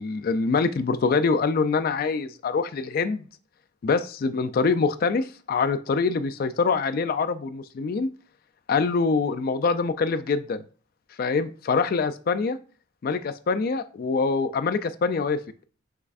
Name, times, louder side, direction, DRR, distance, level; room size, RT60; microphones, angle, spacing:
voice 1, 0.0-3.2 3.8-8.1 8.7-10.6 11.2-12.6 13.0-15.4, left 4 dB, 50° left, 11 dB, 0.3 m, -24 dB
5.8 x 3.1 x 2.5 m, 0.39 s
head